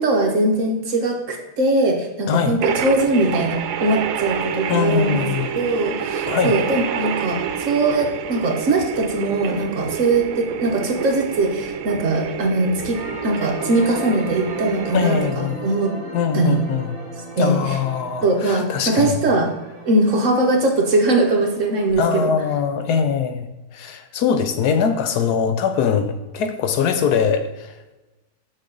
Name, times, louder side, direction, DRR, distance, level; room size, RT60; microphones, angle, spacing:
voice 1, 0.0-5.2 5.5-15.9 16.3-16.6 17.4-17.8 18.2-19.5 19.9-22.3, right 2 dB, 55° right, 3 dB, 1.2 m, -21 dB
voice 2, 2.3-2.6 4.7-5.5 6.3-6.6 14.9-15.7 16.1-17.0 17.4-19.2 22.0-27.7, left 7 dB, 75° left, 9 dB, 1.2 m, -22 dB
sound 1, 2.6-15.3, right 8 dB, 80° right, 1.1 m, -28 dB
sound 2, 12.9-22.0, right 2 dB, 55° left, 2.7 m, -36 dB
6.4 x 6.3 x 3.8 m, 1.1 s
omnidirectional pair, 1.7 m